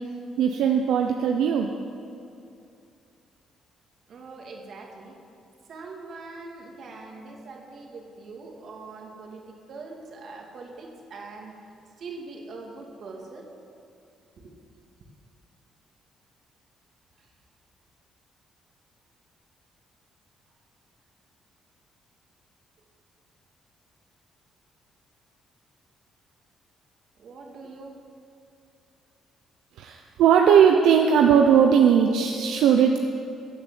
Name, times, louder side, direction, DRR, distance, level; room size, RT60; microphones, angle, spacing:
voice 1, 0.4-1.7 29.8-33.0, right 7 dB, 85° right, 3 dB, 0.8 m, -18 dB
voice 2, 4.1-5.2 5.7-11.6 12.0-13.5 14.4-14.8 17.2-17.3 27.2-28.0, right 3 dB, 60° right, 1 dB, 2.5 m, -42 dB
15.5 x 8.7 x 7.6 m, 2.6 s
cardioid pair, 90°, 0 cm